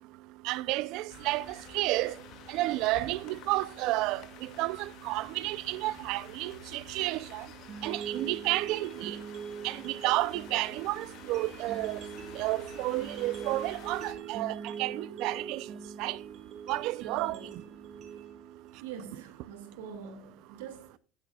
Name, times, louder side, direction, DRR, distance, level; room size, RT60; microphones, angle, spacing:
voice 1, 0.4-1.4 1.7-2.1 2.5-7.5 7.8-9.2 9.6-12.0 12.4-15.6 16.0-16.2 16.7-17.4, right 18 dB, 65° right, 0.5 m, -31 dB
sound 1, 1.1-14.1, left 8 dB, 60° left, 2.3 m, -51 dB
sound 2, 7.7-19.7, right 6 dB, 50° right, 2.2 m, -43 dB
voice 2, 18.8-21.0, right 7 dB, 85° right, 2.2 m, -44 dB
14.5 x 10.0 x 2.4 m
supercardioid pair, 110°, 0 cm